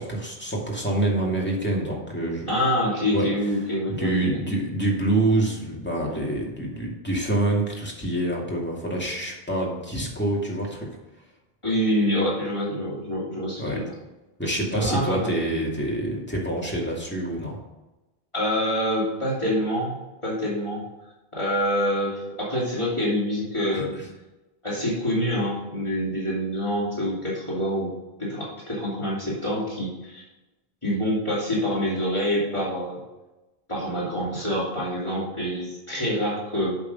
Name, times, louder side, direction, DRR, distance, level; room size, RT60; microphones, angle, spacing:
voice 1, 0.0-2.5 3.1-3.3 3.9-10.9 13.6-13.8 14.4-17.6 23.7-24.1, right 1 dB, 10° left, -3 dB, 2.2 m, -26 dB
voice 2, 2.5-4.3 11.6-13.9 14.7-15.3 18.3-20.0 20.2-20.8 21.3-23.9 24.6-27.9 28.2-30.2 30.8-33.0 33.7-36.7, equal, 25° left, -7 dB, 2.7 m, -26 dB
8.3 x 6.1 x 5.3 m, 1.0 s
omnidirectional pair, 1.1 m